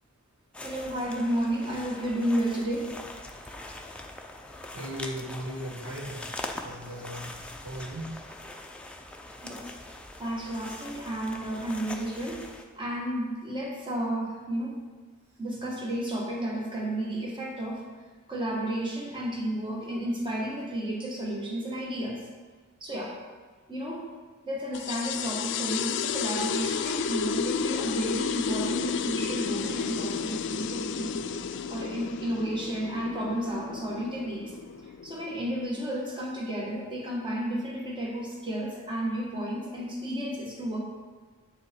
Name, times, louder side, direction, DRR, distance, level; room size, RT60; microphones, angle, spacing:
sound 1, 0.5-12.6, left 1 dB, 5° left, 0.6 m, -42 dB
voice 1, 0.6-2.9 9.4-9.7 10.2-12.4 12.8-14.8 15.4-17.8 18.3-22.2 22.8-23.1 23.7-24.1 24.4-31.2 31.7-34.4 35.0-40.8, right 1 dB, 25° right, -2 dB, 1.5 m, -32 dB
voice 2, 4.7-6.3 6.6-7.3 7.6-8.1, equal, 85° right, -1 dB, 1.4 m, -37 dB
sound 2, 24.7-35.8, left 6 dB, 55° left, 0.4 m, -32 dB
8.1 x 6.7 x 4.5 m, 1.4 s
head